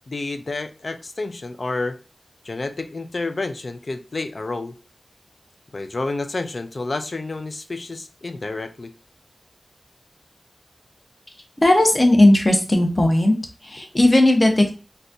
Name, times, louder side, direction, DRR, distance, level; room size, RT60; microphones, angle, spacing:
voice 1, 0.1-2.0 2.4-4.8 5.7-8.9, left 3 dB, 60° left, 0.4 m, -29 dB
voice 2, 11.6-13.4 13.6-14.7, left 1 dB, 35° left, 0.8 m, -16 dB
3.9 x 2.2 x 2.6 m
wide cardioid pair, 60°, 0 cm